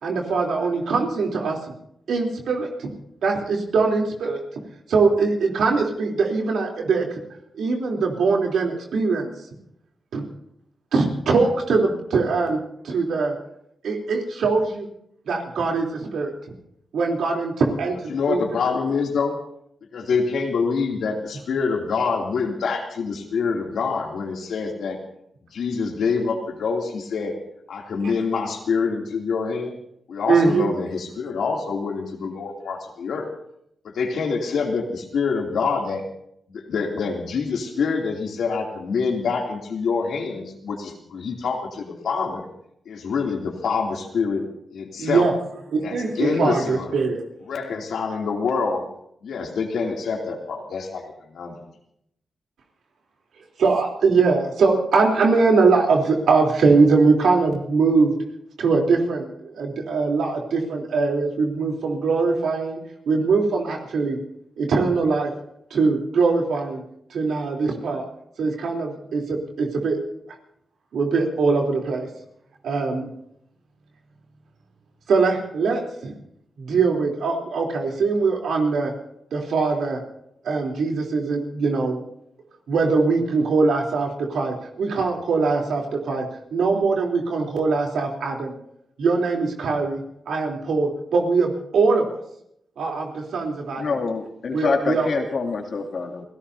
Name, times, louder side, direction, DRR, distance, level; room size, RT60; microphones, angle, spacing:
voice 1, 0.0-1.6 2.1-2.9 3.2-4.4 4.9-7.1 7.6-9.3 10.1-10.2 10.9-12.6 12.8-13.3 13.8-14.9 15.3-15.9 16.1-16.3 16.9-18.4 30.3-30.7 45.0-45.3 45.7-47.2 53.6-58.1 58.6-62.8 63.1-64.2 64.6-65.3 65.7-66.8 67.1-68.0 68.4-70.0 70.9-72.1 72.6-73.1 75.1-76.2 76.6-78.9 79.3-80.0 80.4-82.0 82.7-86.2 86.5-88.5 89.0-92.0 92.8-93.8 94.5-95.1, right 4 dB, 90° right, 0 dB, 3.6 m, -21 dB
voice 2, 18.1-19.4 19.9-25.0 25.5-27.3 27.7-29.8 30.1-33.3 33.9-36.0 36.5-42.4 42.8-44.4 44.7-45.3 45.8-47.0 47.5-48.8 49.2-51.0 51.3-51.5, left 5 dB, 85° left, 0 dB, 2.9 m, -26 dB
voice 3, 93.8-96.2, left 4 dB, 65° left, 2 dB, 2.8 m, -25 dB
29.5 x 16.5 x 2.8 m, 0.75 s
cardioid pair, 70°, 0 cm